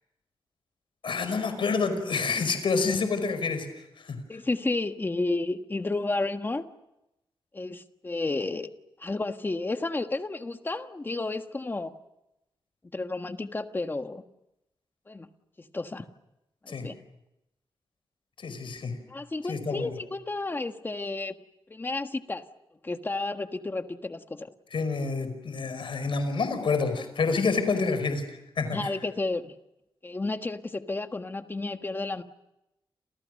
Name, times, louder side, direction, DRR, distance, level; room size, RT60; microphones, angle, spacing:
voice 1, 1.0-3.7 4.0-4.2 16.7-16.9 18.4-19.0 19.5-19.9 24.7-28.2 28.6-28.9, left 4 dB, 65° left, 9 dB, 5.1 m, -28 dB
voice 2, 4.3-6.7 7.5-8.7 9.0-11.9 12.9-14.2 15.1-15.3 15.6-16.1 16.6-17.0 19.1-21.3 21.7-22.4 22.8-24.5 28.7-29.6 30.0-32.2, left 2 dB, 25° left, 7 dB, 1.5 m, -31 dB
30.0 x 28.0 x 6.5 m, 0.90 s
wide cardioid pair, 160°, 9 cm